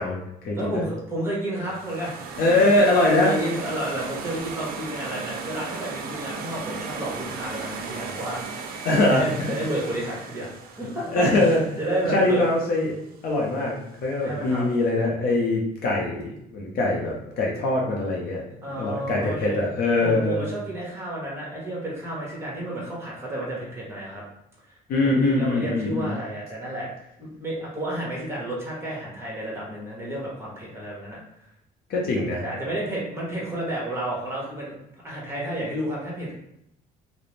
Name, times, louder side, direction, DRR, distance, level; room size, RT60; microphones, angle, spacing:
voice 1, 0.0-0.8 2.4-3.3 8.8-9.2 11.1-11.6 12.1-13.0 13.2-20.5 24.9-26.1 31.9-32.4, left 2 dB, 65° left, -2 dB, 0.6 m, -23 dB
voice 2, 0.5-2.7 3.1-8.7 9.0-12.5 14.2-14.6 18.6-19.6 20.0-24.2 25.0-26.9 27.2-31.2 32.4-34.7 35.0-36.3, right 1 dB, 15° right, -4 dB, 1.0 m, -31 dB
sound 1, 1.6-12.6, right 5 dB, 60° right, 0.4 m, -36 dB
2.5 x 2.0 x 3.1 m, 0.78 s
cardioid pair, 110°, 17 cm